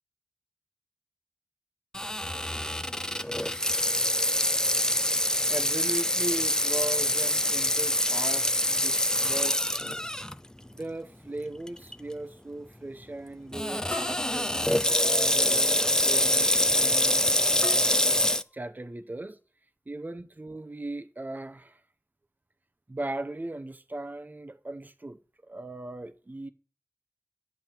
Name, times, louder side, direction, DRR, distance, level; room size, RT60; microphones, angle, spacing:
Water tap faucet / Sink (filling or washing), 1.9-10.3 10.8-10.9 11.7-11.9 13.5-18.4, left 1 dB, 15° left, 0.5 m, -25 dB
voice 1, 5.5-9.8 10.7-14.7 15.0-17.3 18.5-19.4 19.9-21.8 22.9-26.5, right 1 dB, 35° right, 0.7 m, -38 dB
sound 1, 10.6-10.7 11.3-11.4 12.0-12.1 13.9-15.1 17.6-18.9, left 1 dB, 40° left, 1.5 m, -42 dB
10.5 x 8.1 x 4.5 m
wide cardioid pair, 40°, 5 cm